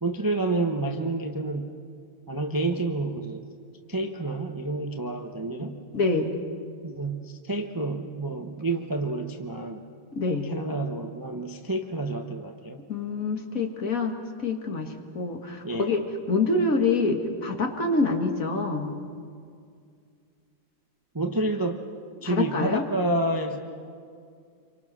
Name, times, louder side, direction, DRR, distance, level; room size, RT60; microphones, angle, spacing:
voice 1, 0.0-1.7 2.3-3.4 3.9-5.8 6.8-9.8 10.4-12.8 15.6-15.9 21.1-21.8 22.2-23.6, right 2 dB, 15° right, 4 dB, 0.9 m, -29 dB
voice 2, 5.9-6.4 10.1-10.5 12.9-14.2 14.4-18.9 22.2-22.8, left 3 dB, 50° left, 4 dB, 2.2 m, -26 dB
28.0 x 24.5 x 6.1 m, 2.2 s
omnidirectional pair, 1.9 m